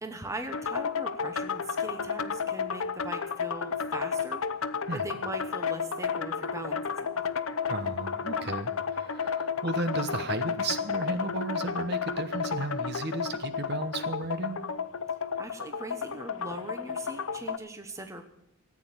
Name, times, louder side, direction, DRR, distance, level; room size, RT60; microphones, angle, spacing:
voice 1, 0.0-4.4 4.9-7.2 15.4-18.3, right 1 dB, 15° right, 7 dB, 0.9 m, -40 dB
sound 1, 0.5-17.6, left 6 dB, 75° left, 0.7 m, -32 dB
voice 2, 7.7-14.6, right 2 dB, 50° right, 10 dB, 1.1 m, -34 dB
14.5 x 8.7 x 8.7 m, 0.84 s
head